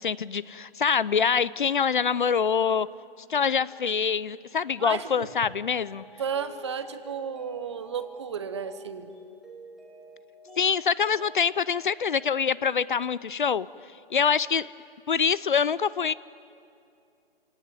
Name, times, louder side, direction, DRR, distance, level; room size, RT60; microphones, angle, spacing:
voice 1, 0.0-2.9 3.3-6.0 10.6-13.7 14.1-14.7 15.1-16.1, left 6 dB, 55° left, 20 dB, 0.6 m, -25 dB
voice 2, 4.8-5.3 6.2-9.1, right 7 dB, 30° right, 11 dB, 1.0 m, -33 dB
Mallet percussion, 4.9-13.1, equal, ahead, 1.3 m, -50 dB
27.5 x 18.0 x 9.7 m, 2.5 s
hypercardioid pair, 170°, 30 cm